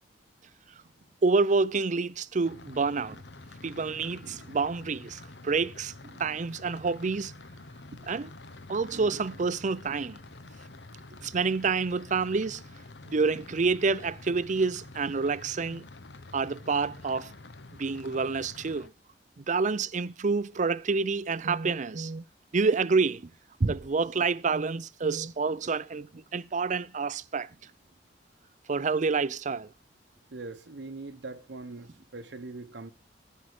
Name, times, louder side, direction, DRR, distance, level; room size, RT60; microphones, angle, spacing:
voice 1, 1.2-3.2 3.6-7.3 8.1-8.3 8.7-10.2 11.2-12.6 13.1-15.8 16.3-17.3 17.8-18.9 19.4-22.2 22.5-23.2 23.6-27.5 28.7-29.7, right 4 dB, 45° right, 0.5 m, -28 dB
sound 1, 2.4-18.9, left 2 dB, 70° left, 1.0 m, -48 dB
voice 2, 30.3-32.9, right 3 dB, 75° right, 0.9 m, -42 dB
15.0 x 5.7 x 6.5 m
head